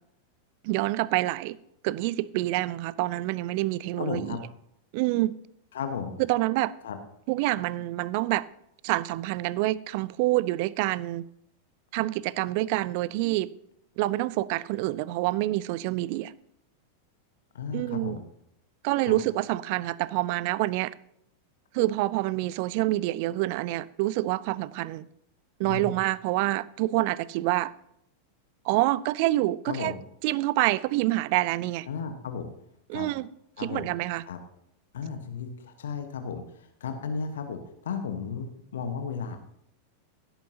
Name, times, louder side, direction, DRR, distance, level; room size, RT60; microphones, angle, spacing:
voice 1, 0.6-1.6 1.8-4.4 4.9-5.3 6.2-6.7 7.3-8.4 8.8-11.2 11.9-13.5 14.0-16.3 17.7-18.2 18.8-20.9 21.7-25.1 25.6-27.7 28.6-29.9 30.2-31.9 32.9-33.3 33.6-34.2, right 17 dB, 45° right, 0.4 m, -27 dB
voice 2, 4.0-4.4 5.7-6.1 6.8-7.0 17.5-18.2 19.1-19.2 25.6-25.9 29.7-30.0 31.9-32.5 32.9-33.1 33.6-33.9 34.3-34.4 34.9-36.4 36.8-39.4, left 6 dB, 60° left, 1.2 m, -34 dB
16.5 x 8.8 x 2.8 m
figure-of-eight pair, 90°, 0 cm